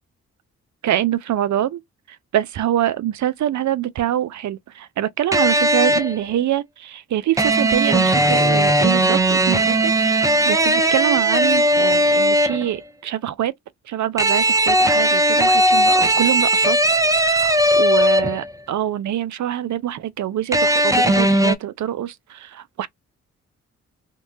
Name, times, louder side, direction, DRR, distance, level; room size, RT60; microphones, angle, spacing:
voice 1, 0.8-1.8 2.1-13.5 13.9-16.8 17.1-22.9, right 12 dB, 55° right, 0.5 m, -25 dB
sound 1, 5.3-6.2 7.4-12.7 14.2-18.5 20.5-21.6, right 1 dB, 10° right, 0.5 m, -17 dB
2.8 x 2.2 x 2.5 m
supercardioid pair, 40°, 35 cm